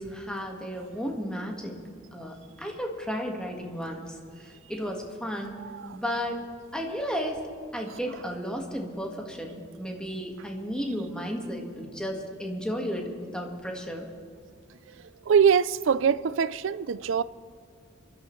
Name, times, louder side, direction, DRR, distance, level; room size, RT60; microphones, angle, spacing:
voice 1, 0.0-1.8 2.1-5.6 5.9-6.4 6.7-7.4 7.7-14.1, equal, 5° left, 1.6 m, -33 dB
voice 2, 5.6-6.0 15.3-17.2, right 7 dB, 70° right, 0.4 m, -23 dB
27.0 x 12.5 x 3.2 m
head